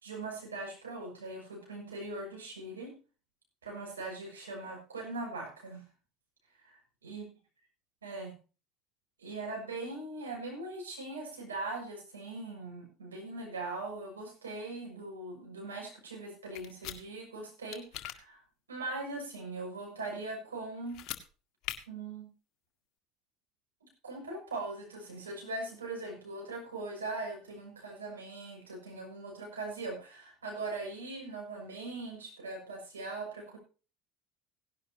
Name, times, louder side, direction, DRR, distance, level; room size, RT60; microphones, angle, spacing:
voice 1, 0.0-2.9 3.6-5.8 6.6-7.2 8.0-8.3 9.2-18.4 18.7-21.0 21.9-22.3 24.0-33.6, right 2 dB, 90° right, 1 dB, 6.5 m, -40 dB
sound 1, 16.6-17.0 17.7-18.2 20.9-21.2 21.6-21.8, left 13 dB, 55° left, 1.8 m, -39 dB
18.0 x 11.0 x 2.9 m, 0.34 s
hypercardioid pair, 75°, 0 cm